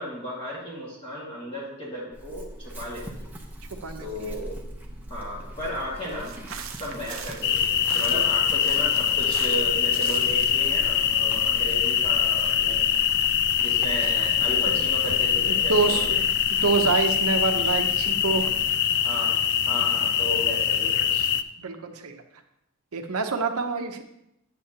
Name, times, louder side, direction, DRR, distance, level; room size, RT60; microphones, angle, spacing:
voice 1, 0.0-3.3 4.0-4.6 5.1-6.3 6.7-12.9 13.6-16.2 19.0-19.4 19.7-21.3, equal, 25° left, -6 dB, 1.9 m, -34 dB
Chewing mastication / Livestock farm animals working animals, 2.1-18.7, right 1 dB, 10° right, 0.8 m, -42 dB
voice 2, 3.8-4.4 7.9-8.3 14.7-14.8 15.4-16.2 16.5-18.5 21.6-22.2 22.9-24.0, right 4 dB, 90° right, 5 dB, 0.9 m, -27 dB
sound 1, 6.0-10.7, right 7 dB, 65° right, 0.6 m, -41 dB
sound 2, 7.4-21.4, left 9 dB, 50° left, 0.3 m, -23 dB
8.8 x 7.7 x 2.8 m, 0.83 s
head